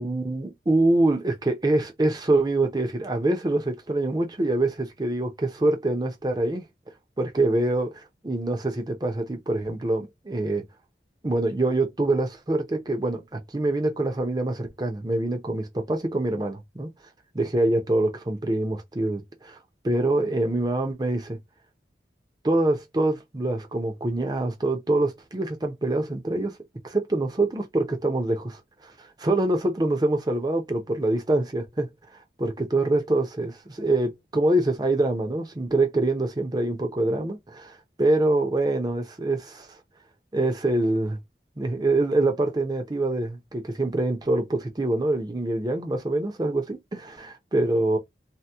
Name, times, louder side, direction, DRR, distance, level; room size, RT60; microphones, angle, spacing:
voice 1, 0.0-6.6 7.2-10.6 11.2-16.9 17.3-19.6 19.8-21.4 22.4-26.6 26.8-31.9 32.4-39.7 40.3-41.2 41.6-48.0, right 2 dB, 25° right, 0.7 m, -25 dB
2.9 x 2.2 x 3.4 m
head